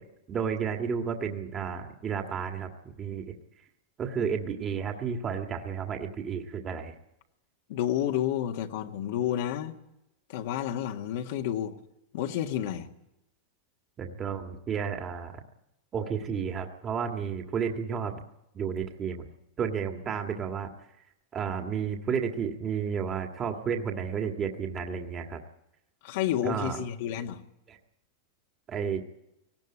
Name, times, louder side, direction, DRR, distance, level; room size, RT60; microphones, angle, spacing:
voice 1, 0.0-3.3 4.0-7.0 14.0-15.4 15.9-18.1 18.5-19.3 19.6-20.7 21.3-25.4 26.4-26.8 27.7-27.8 28.7-29.0, right 7 dB, 25° right, 3 dB, 1.8 m, -32 dB
voice 2, 7.7-9.8 10.3-11.7 12.1-12.9 26.0-27.4, left 11 dB, 65° left, 4 dB, 1.7 m, -30 dB
18.5 x 17.5 x 9.8 m, 0.85 s
supercardioid pair, 150°, 0 cm